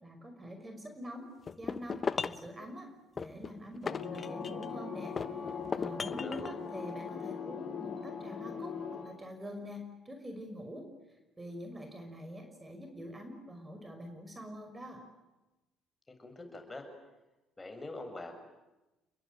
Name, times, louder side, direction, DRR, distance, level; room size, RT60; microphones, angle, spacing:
voice 1, 0.0-1.3 1.6-2.9 3.1-5.2 5.4-10.9 11.4-15.0, equal, 20° right, 5 dB, 5.7 m, -45 dB
sound 1, 1.5-2.5 3.2-4.7 5.2-6.5, left 5 dB, 40° left, 1.0 m, -36 dB
sound 2, 3.9-9.0, left 6 dB, 60° left, 6.4 m, -40 dB
voice 2, 6.1-6.6 16.1-16.8 17.6-18.4, left 2 dB, 20° left, 4 dB, 7.6 m, -44 dB
29.0 x 22.0 x 9.3 m, 1.0 s
hypercardioid pair, 55°, 0 cm